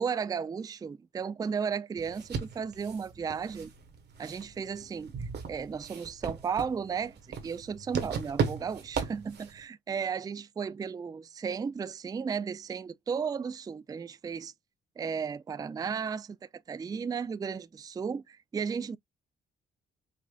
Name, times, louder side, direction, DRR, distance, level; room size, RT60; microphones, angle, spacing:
voice 1, 0.0-3.7 4.2-7.1 7.4-14.5 15.0-19.0, right 6 dB, 20° right, 0.3 m, -34 dB
sound 1, 2.0-9.6, right 6 dB, 55° right, 1.5 m, -37 dB
5.5 x 2.5 x 2.3 m
cardioid pair, 90°, 20 cm